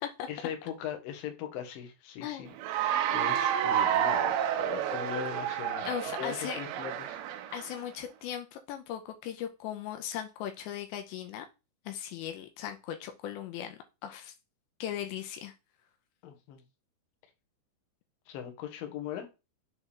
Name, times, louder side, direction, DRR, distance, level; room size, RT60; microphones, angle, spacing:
voice 1, 0.3-2.5 3.1-5.9 6.2-7.5 16.2-16.6 18.3-19.3, left 9 dB, 65° left, 2.5 m, -40 dB
voice 2, 2.2-2.5 5.9-6.6 7.5-11.5 11.9-14.3 14.8-15.5, left 10 dB, 85° left, 2.9 m, -38 dB
Cheering / Applause, 2.6-7.7, right 10 dB, 80° right, 2.2 m, -30 dB
7.1 x 4.4 x 3.3 m
omnidirectional pair, 5.1 m